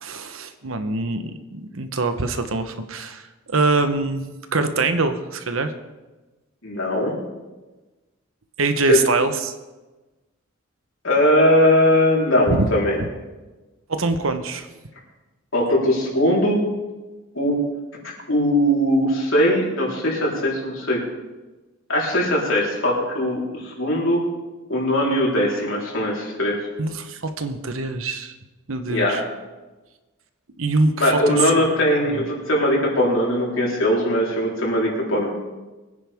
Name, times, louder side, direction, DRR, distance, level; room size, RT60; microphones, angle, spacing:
voice 1, 0.0-3.2 3.5-5.7 8.6-9.5 12.5-12.7 13.9-14.7 26.8-28.3 28.7-29.2 30.6-31.7 32.1-32.2, right 3 dB, 70° right, 9 dB, 1.1 m, -24 dB
voice 2, 6.6-7.1 8.8-9.0 11.0-13.0 15.5-16.6 17.3-17.6 18.0-21.0 21.9-24.3 24.7-26.6 28.9-29.2 31.0-35.3, left 1 dB, 65° left, -3 dB, 4.1 m, -20 dB
23.0 x 9.9 x 3.6 m, 1.2 s
head